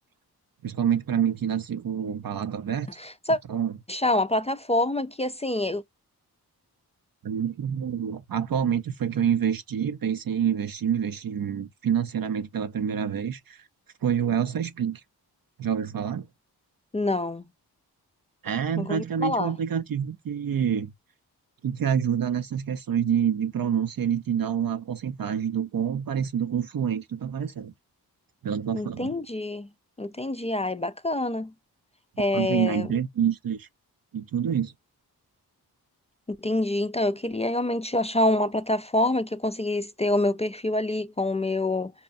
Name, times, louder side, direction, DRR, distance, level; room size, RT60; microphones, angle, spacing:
voice 1, 0.6-2.9 3.5-3.7 7.2-13.7 14.0-15.0 15.6-16.2 18.4-20.9 21.6-27.7 28.4-29.1 32.3-33.7 34.1-34.7, right 8 dB, 60° right, 0.7 m, -27 dB
voice 2, 3.0-3.4 3.9-5.8 16.9-17.4 18.8-19.5 28.7-29.7 30.0-31.5 32.2-32.9 36.3-41.9, left 1 dB, 15° left, 0.4 m, -26 dB
5.4 x 2.2 x 2.5 m
cardioid pair, 50°, 40 cm